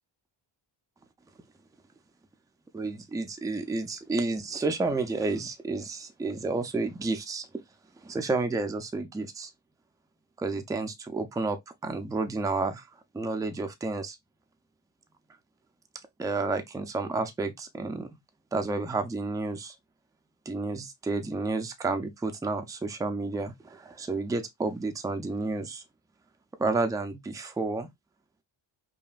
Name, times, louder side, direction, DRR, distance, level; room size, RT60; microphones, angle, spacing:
voice 1, 2.7-7.5 8.0-9.5 10.4-12.9 13.1-14.2 16.2-18.1 18.5-19.8 20.5-25.8 26.6-27.9, right 3 dB, 10° right, 0.4 m, -31 dB
5.2 x 2.6 x 2.3 m
wide cardioid pair, 170°, 47 cm